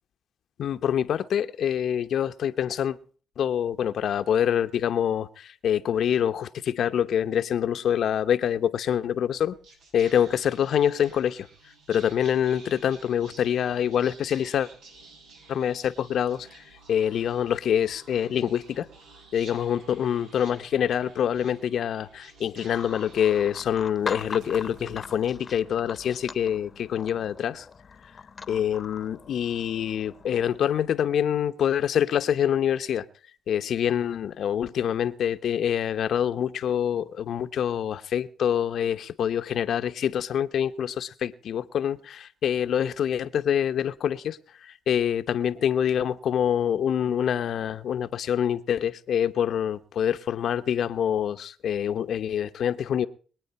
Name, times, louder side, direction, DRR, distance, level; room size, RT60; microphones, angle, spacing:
voice 1, 0.6-3.0 3.4-9.5 9.9-11.5 11.9-14.7 15.5-16.6 16.9-18.9 19.3-27.7 28.5-33.1 33.5-53.1, left 9 dB, 65° left, 1.0 m, -26 dB
Whispering, 9.3-25.9, right 3 dB, 85° right, 6.5 m, -52 dB
sound 1, 22.7-30.6, left 5 dB, 35° left, 1.0 m, -41 dB
24.0 x 9.2 x 4.3 m
cardioid pair, 90°, 0 cm